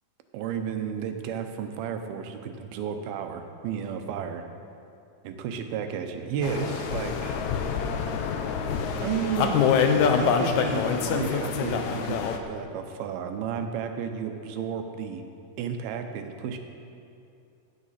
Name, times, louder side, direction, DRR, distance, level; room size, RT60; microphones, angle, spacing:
voice 1, 0.3-4.5 5.2-7.4 9.0-9.6 10.2-15.2 15.6-16.6, right 7 dB, 85° right, 6 dB, 2.7 m, -32 dB
sound 1, 6.4-12.4, left 6 dB, 85° left, 1.6 m, -25 dB
16.5 x 9.4 x 4.2 m, 2.6 s
omnidirectional pair, 4.3 m